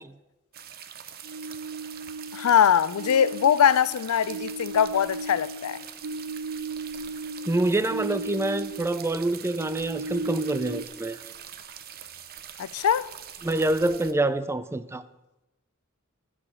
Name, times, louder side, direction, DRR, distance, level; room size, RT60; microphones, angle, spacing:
sound 1, 0.5-14.1, right 9 dB, 45° right, 0.7 m, -44 dB
sound 2, 1.2-2.5 2.9-9.0 9.2-10.8, right 3 dB, 85° right, 0.7 m, -36 dB
voice 1, 2.3-5.8 12.6-13.1, left 8 dB, 90° left, 0.4 m, -22 dB
voice 2, 7.5-11.2 13.4-15.0, right 2 dB, 10° right, 0.4 m, -26 dB
14.5 x 4.9 x 7.5 m
head